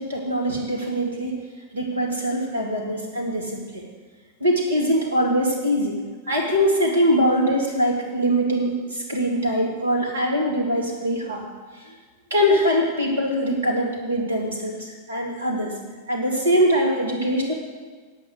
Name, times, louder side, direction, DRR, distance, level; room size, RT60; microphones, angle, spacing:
voice 1, 0.0-1.4 1.7-3.8 4.4-5.9 6.3-11.4 11.8-11.9 12.3-15.8 16.1-17.5, equal, 70° right, -1 dB, 2.6 m, -22 dB
8.4 x 8.2 x 8.1 m, 1.5 s
figure-of-eight pair, 90°, 0 cm